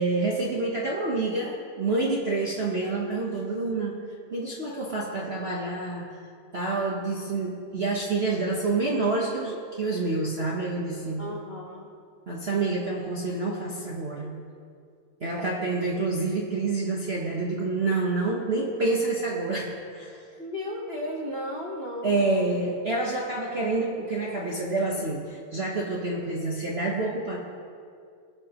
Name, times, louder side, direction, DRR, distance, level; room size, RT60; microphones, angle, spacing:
voice 1, 0.0-4.0 4.3-6.3 6.5-11.2 12.3-14.3 15.2-20.2 22.0-27.4, right 3 dB, 40° right, -4 dB, 0.9 m, -28 dB
voice 2, 11.2-11.9 15.4-15.7 20.4-22.6, left 1 dB, 40° left, -3 dB, 1.0 m, -35 dB
20.5 x 6.9 x 3.0 m, 2.3 s
omnidirectional pair, 2.4 m